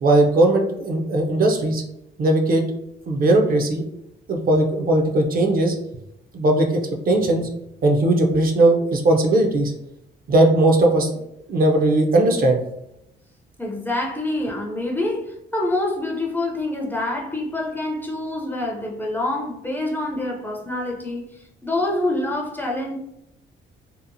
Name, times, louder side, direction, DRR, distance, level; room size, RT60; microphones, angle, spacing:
voice 1, 0.0-1.8 2.2-2.6 3.1-3.8 4.3-5.7 6.3-6.8 7.1-7.5 7.8-9.7 10.3-11.1 11.5-12.6, right 2 dB, 45° right, 2 dB, 0.5 m, -18 dB
voice 2, 13.6-21.3 21.6-23.0, left 1 dB, 10° left, -1 dB, 0.4 m, -26 dB
2.8 x 2.0 x 2.6 m, 0.83 s
cardioid pair, 90°, 20 cm